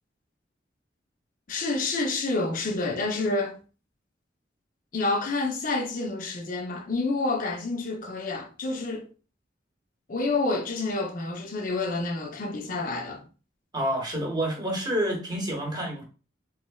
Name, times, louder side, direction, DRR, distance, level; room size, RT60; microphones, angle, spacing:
voice 1, 1.5-3.6 4.9-9.1 10.1-13.2, left 3 dB, 45° left, 0.6 m, -28 dB
voice 2, 13.7-16.0, right 1 dB, 20° right, 0.9 m, -28 dB
3.8 x 3.1 x 2.2 m
head